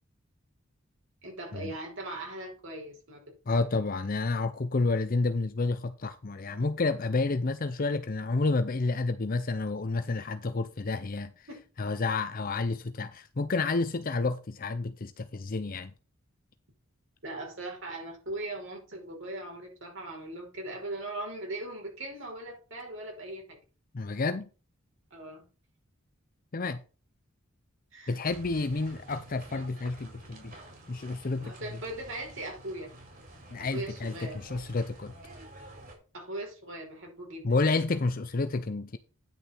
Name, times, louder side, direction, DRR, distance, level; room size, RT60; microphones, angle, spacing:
voice 1, 1.2-3.2 3.5-3.6 10.1-10.2 10.6-10.7 11.5-11.6 17.2-23.6 25.1-25.4 27.9-28.1 31.4-32.9 33.6-34.4 36.1-37.4, right 2 dB, 60° right, 5.0 m, -39 dB
voice 2, 3.5-11.5 11.8-15.9 23.9-24.5 26.5-26.8 28.1-30.5 30.9-31.5 33.5-35.1 37.4-39.0, left 3 dB, 40° left, 0.6 m, -30 dB
sound 1, 28.3-36.0, right 1 dB, 45° right, 4.7 m, -49 dB
10.0 x 6.6 x 4.4 m
head